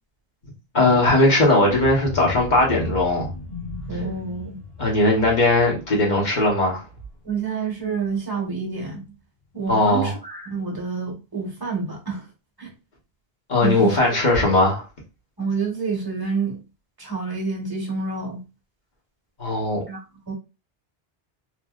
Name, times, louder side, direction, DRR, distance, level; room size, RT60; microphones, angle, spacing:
voice 1, 0.7-3.3 4.8-6.8 9.7-10.1 13.5-14.8 19.4-19.8, left 2 dB, 45° left, 1.3 m, -19 dB
sound 1, 1.7-7.4 7.8-8.1 8.4-8.5, left 2 dB, 75° left, 1.7 m, -36 dB
voice 2, 3.9-4.6 7.2-9.1 9.5-12.3 12.6-12.7 13.6-14.2 15.4-16.6 17.0-18.4 19.9-20.0 20.3-20.4, right 4 dB, 20° right, 1.0 m, -28 dB
3.1 x 2.6 x 2.3 m
omnidirectional pair, 1.0 m